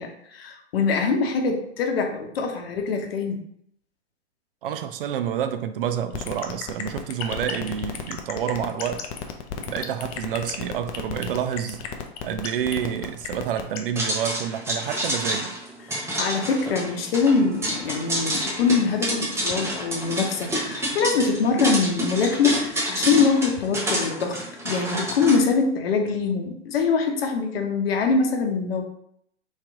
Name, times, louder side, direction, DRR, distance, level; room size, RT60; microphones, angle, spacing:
voice 1, 0.0-3.4 15.9-28.8, left 5 dB, 60° left, 0.8 m, -23 dB
voice 2, 4.6-9.1 9.7-11.9 12.2-15.6, right 9 dB, 55° right, 0.4 m, -28 dB
sound 1, 6.1-13.8, left 9 dB, 35° left, 0.5 m, -32 dB
sound 2, 14.0-25.4, right 1 dB, 10° right, 0.8 m, -28 dB
sound 3, 17.3-22.8, left 2 dB, 15° left, 1.2 m, -40 dB
3.2 x 2.9 x 3.5 m
figure-of-eight pair, 105°, 34 cm